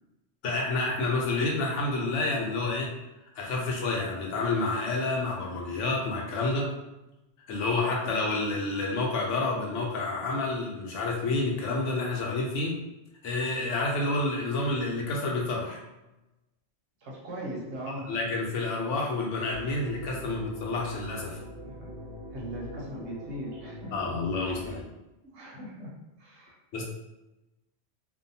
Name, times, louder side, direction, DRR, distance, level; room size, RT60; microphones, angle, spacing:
voice 1, 0.4-2.9 3.4-6.7 7.5-12.8 13.2-15.8 17.9-21.4 23.9-24.9 26.7-26.8, left 2 dB, 90° left, -1 dB, 1.0 m, -29 dB
voice 2, 17.0-18.2 21.6-21.9 22.3-24.1 24.4-24.8 25.2-26.5, right 1 dB, 70° right, -3 dB, 1.0 m, -40 dB
sound 1, 19.5-24.8, equal, 45° right, 0.4 m, -42 dB
2.6 x 2.2 x 2.6 m, 0.98 s
omnidirectional pair, 1.2 m